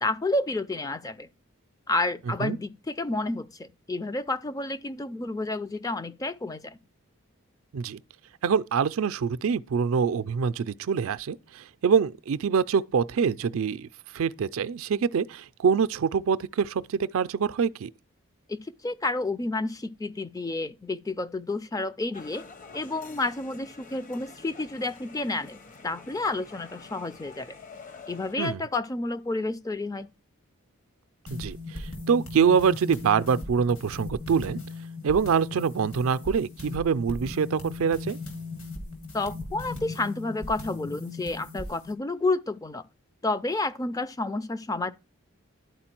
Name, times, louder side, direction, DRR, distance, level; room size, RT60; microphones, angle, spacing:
voice 1, 0.0-1.3 1.9-6.8 18.5-22.5 22.7-27.6 28.1-30.1 39.1-42.8 43.2-44.9, left 2 dB, 15° left, 0.3 m, -30 dB
voice 2, 8.4-13.9 14.1-17.9 28.4-28.6 31.3-34.6 35.0-38.2, right 6 dB, 70° right, 0.4 m, -25 dB
sound 1, 22.1-28.3, left 4 dB, 35° left, 0.7 m, -48 dB
sound 2, 31.3-41.9, left 2 dB, 70° left, 2.5 m, -38 dB
11.0 x 4.5 x 4.4 m
head